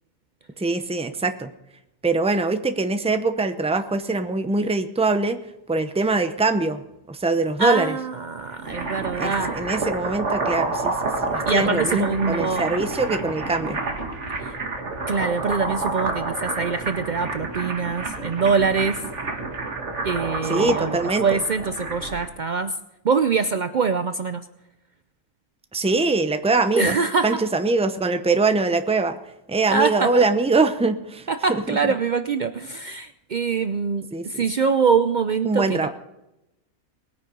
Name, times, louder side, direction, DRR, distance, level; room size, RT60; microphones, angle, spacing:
voice 1, 0.6-1.5 2.0-5.4 5.7-6.8 7.1-8.0 9.2-13.8 20.4-21.4 25.7-27.0 27.2-29.2 29.5-31.9 34.1-34.4 35.4-35.9, right 3 dB, 5° right, 8 dB, 0.4 m, -23 dB
voice 2, 7.6-9.6 11.5-12.7 14.4-14.5 15.1-19.0 20.0-22.7 23.0-24.5 26.7-27.4 29.7-30.2 31.3-35.9, right 5 dB, 85° right, 10 dB, 0.4 m, -24 dB
sound 1, 8.4-22.3, right 3 dB, 50° right, 2.1 m, -29 dB
20.0 x 9.7 x 5.4 m, 0.92 s
omnidirectional pair, 1.6 m